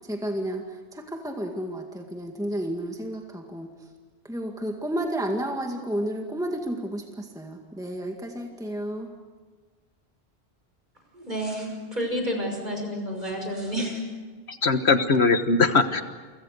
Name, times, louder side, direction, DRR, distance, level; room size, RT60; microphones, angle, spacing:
voice 1, 0.0-3.7 4.2-9.1, right 1 dB, 5° right, 2 dB, 2.0 m, -31 dB
voice 2, 11.1-14.0, equal, 45° right, 2 dB, 6.0 m, -30 dB
voice 3, 14.5-16.0, left 4 dB, 75° left, 9 dB, 1.5 m, -21 dB
29.5 x 24.5 x 6.7 m, 1.5 s
omnidirectional pair, 1.1 m